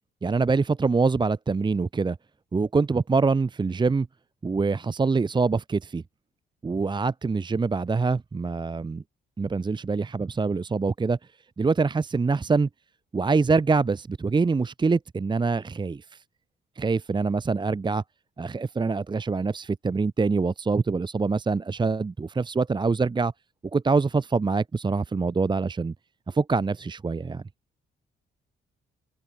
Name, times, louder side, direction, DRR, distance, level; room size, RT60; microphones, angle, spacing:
voice 1, 0.2-2.2 2.5-4.1 4.4-6.0 6.6-9.0 9.4-11.2 11.6-12.7 13.1-16.1 16.8-18.0 18.4-23.3 23.7-25.9 26.3-27.4, right 4 dB, 25° right, 0.8 m, -25 dB
cardioid pair, 90°, 20 cm